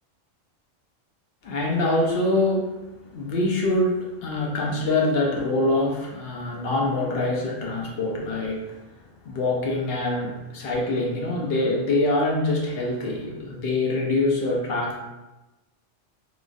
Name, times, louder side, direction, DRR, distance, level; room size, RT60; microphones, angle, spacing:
voice 1, 1.4-2.8 3.1-8.8 9.2-15.0, left 2 dB, 60° left, -1 dB, 0.7 m, -24 dB
3.0 x 2.3 x 2.5 m, 1.0 s
omnidirectional pair, 1.3 m